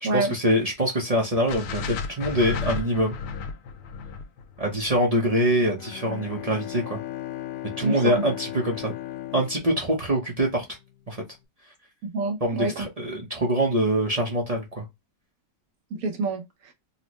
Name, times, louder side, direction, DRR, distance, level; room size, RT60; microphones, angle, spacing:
voice 1, 0.0-3.2 4.6-7.0 7.8-8.9 9.3-10.6 11.1-11.2 12.4-14.8, right 1 dB, 45° right, 0.5 m, -24 dB
sound 1, 1.5-5.7, left 5 dB, 70° left, 1.0 m, -33 dB
Bowed string instrument, 5.7-10.7, left 14 dB, 90° left, 0.6 m, -37 dB
voice 2, 7.8-8.1 12.0-12.9 15.9-16.7, right 3 dB, 60° right, 1.1 m, -27 dB
4.2 x 2.1 x 2.9 m
omnidirectional pair, 1.8 m